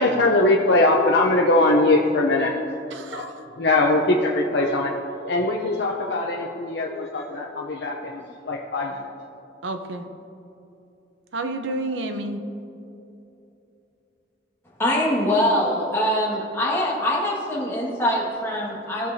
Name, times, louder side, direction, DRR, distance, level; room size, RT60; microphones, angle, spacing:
voice 1, 0.0-2.6 3.1-4.9 5.2-9.1, left 2 dB, 60° left, -1 dB, 0.7 m, -21 dB
voice 2, 2.9-3.4 9.6-10.0 11.3-12.4, right 2 dB, 85° right, 6 dB, 0.8 m, -30 dB
voice 3, 14.8-19.1, left 1 dB, 15° left, -5 dB, 1.7 m, -23 dB
16.5 x 6.7 x 2.7 m, 2.9 s
head